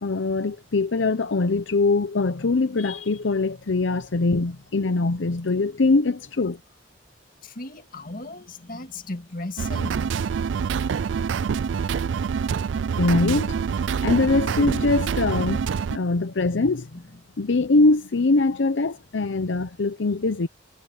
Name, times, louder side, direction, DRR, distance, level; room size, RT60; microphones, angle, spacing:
voice 1, 0.0-6.6 13.0-13.6 14.0-16.9 17.4-20.5, left 3 dB, 75° left, 0.7 m, -22 dB
voice 2, 7.4-10.4 16.9-17.0, left 2 dB, 50° left, 2.1 m, -37 dB
sound 1, 9.6-16.0, right 6 dB, 70° right, 0.4 m, -26 dB
head